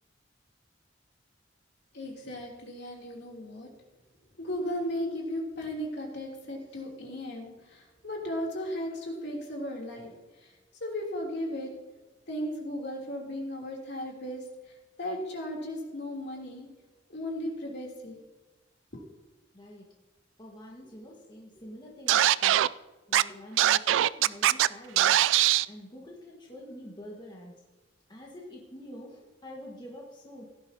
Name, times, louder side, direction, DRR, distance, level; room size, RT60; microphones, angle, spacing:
voice 1, 1.9-3.7 4.4-10.1 10.4-10.5 10.8-11.7 12.3-16.7 17.1-18.2 18.9-19.0, left 1 dB, 60° left, -1 dB, 3.1 m, -36 dB
voice 2, 19.5-19.9 20.4-22.7 23.1-25.3 25.7-27.6 28.1-30.4, equal, 25° left, -2 dB, 1.6 m, -46 dB
Scratching (performance technique), 22.1-22.7 23.1-23.2 23.6-24.7 25.0-25.6, right 12 dB, 75° right, 0.3 m, -21 dB
17.0 x 11.5 x 2.8 m, 1.2 s
head